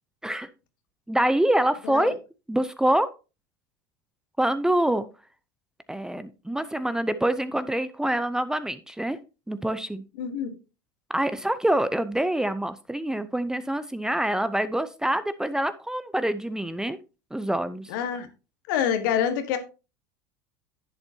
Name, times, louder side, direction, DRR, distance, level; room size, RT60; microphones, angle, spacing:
voice 1, 1.1-2.1 2.5-3.1 4.4-5.1 5.9-9.2 9.5-10.0 11.1-17.0 17.3-17.9, right 1 dB, 5° right, 13 dB, 0.6 m, -25 dB
voice 2, 10.2-10.5 17.9-18.3 18.7-19.6, left 8 dB, 70° left, 9 dB, 1.6 m, -26 dB
10.5 x 7.9 x 2.8 m, 0.31 s
hypercardioid pair, 85°, 11 cm